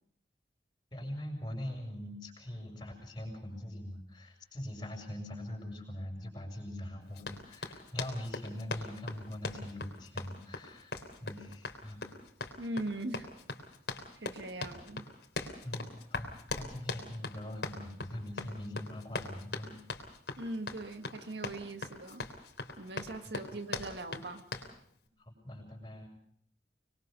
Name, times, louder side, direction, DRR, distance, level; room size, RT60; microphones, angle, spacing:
voice 1, 0.9-12.0 15.6-16.3 16.5-19.8 23.2-23.8 25.2-26.1, left 1 dB, 25° left, 1 dB, 7.1 m, -42 dB
Run, 7.2-24.7, left 3 dB, 80° left, 3.4 m, -41 dB
voice 2, 12.6-13.3 14.2-15.1 20.4-22.3 22.8-24.4, right 1 dB, 80° right, 6 dB, 1.8 m, -40 dB
25.0 x 22.0 x 5.4 m, 0.65 s
head